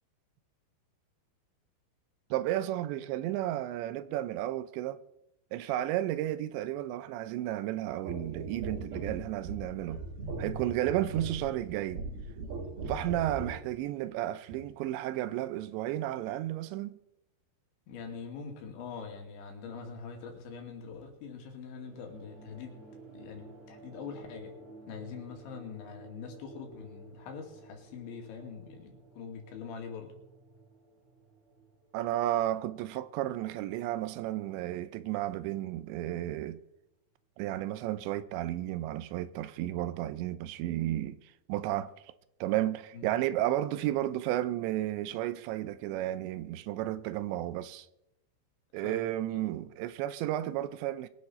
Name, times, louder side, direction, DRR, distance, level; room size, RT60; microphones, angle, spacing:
voice 1, 2.3-5.0 5.5-10.0 10.4-12.0 12.9-17.0 31.9-36.6 37.4-41.2 41.5-41.9 42.4-47.9 48.7-51.1, right 14 dB, 80° right, 2.8 m, -33 dB
sound 1, 8.0-13.6 14.5-14.6, right 3 dB, 60° right, 4.4 m, -39 dB
voice 2, 17.9-22.8 23.1-24.6 24.9-30.1 42.9-43.1 48.8-49.0 49.3-49.4, left 6 dB, 80° left, 4.5 m, -43 dB
sound 2, 21.7-36.6, right 2 dB, 20° right, 1.9 m, -54 dB
22.5 x 10.5 x 4.2 m
omnidirectional pair, 5.3 m